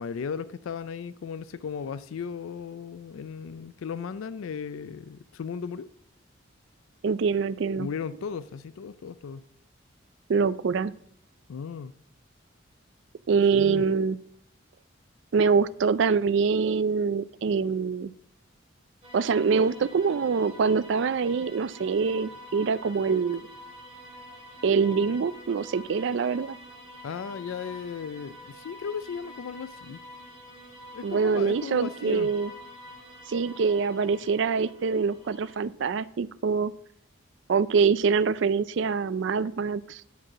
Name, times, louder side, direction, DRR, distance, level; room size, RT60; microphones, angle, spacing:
voice 1, 0.0-5.9 7.7-9.4 11.5-11.9 13.5-13.9 27.0-30.0 30.9-32.3, left 6 dB, 85° left, 0.4 m, -36 dB
voice 2, 7.0-7.9 10.3-10.9 13.3-14.2 15.3-18.1 19.1-23.4 24.6-26.6 31.0-32.5 33.3-36.7 37.5-40.0, right 5 dB, 65° right, 0.4 m, -24 dB
sound 1, 19.0-35.6, equal, 30° right, 2.5 m, -47 dB
10.0 x 4.6 x 6.0 m
head